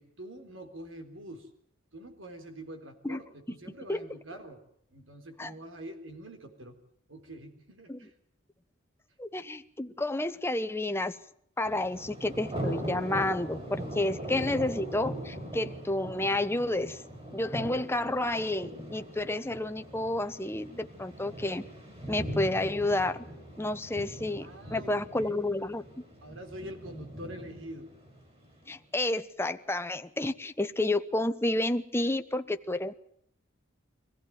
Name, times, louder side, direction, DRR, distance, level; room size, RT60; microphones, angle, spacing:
voice 1, 0.0-1.5 1.9-4.6 4.9-6.7 7.1-8.1 24.4-25.4 26.2-27.9, right 1 dB, 90° right, 6 dB, 3.8 m, -45 dB
voice 2, 9.2-11.2 11.6-17.0 17.3-21.6 22.1-23.2 23.6-25.9 28.7-32.9, left 1 dB, 15° left, 9 dB, 0.9 m, -30 dB
Thunder, 11.7-28.6, equal, 30° right, 6.8 m, -40 dB
24.0 x 15.5 x 9.3 m, 0.66 s
head